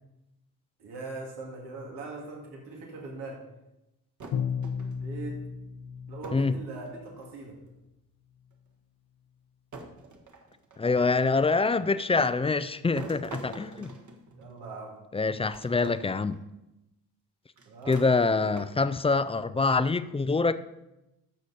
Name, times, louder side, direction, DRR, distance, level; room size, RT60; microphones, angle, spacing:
voice 1, 0.8-3.4 4.9-5.4 6.1-7.6 14.4-14.9 17.6-18.1, right 3 dB, 85° right, 2.5 m, -41 dB
sound 1, 4.2-5.2 6.2-6.6 6.8-7.5 8.5-8.6 9.7-11.0 13.0-14.8 15.5-15.9 16.3-16.4 17.6-19.0, right 3 dB, 50° right, 1.5 m, -46 dB
Bowed string instrument, 4.3-7.1, left 7 dB, 65° left, 0.9 m, -34 dB
voice 2, 10.8-14.0 15.1-16.4 17.9-20.5, left 4 dB, 15° left, 0.4 m, -25 dB
11.5 x 6.6 x 4.2 m
cardioid pair, 80°, 39 cm